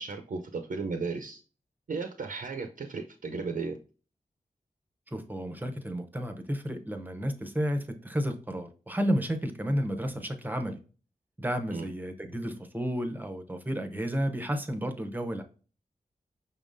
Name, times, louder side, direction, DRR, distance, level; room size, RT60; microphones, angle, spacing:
voice 1, 0.0-1.4 1.9-3.8 10.1-10.3 11.7-11.9, right 4 dB, 65° right, 0.6 m, -35 dB
voice 2, 5.1-10.8 11.4-15.4, equal, 10° right, 0.7 m, -32 dB
5.7 x 3.6 x 2.5 m
wide cardioid pair, 90°, 15 cm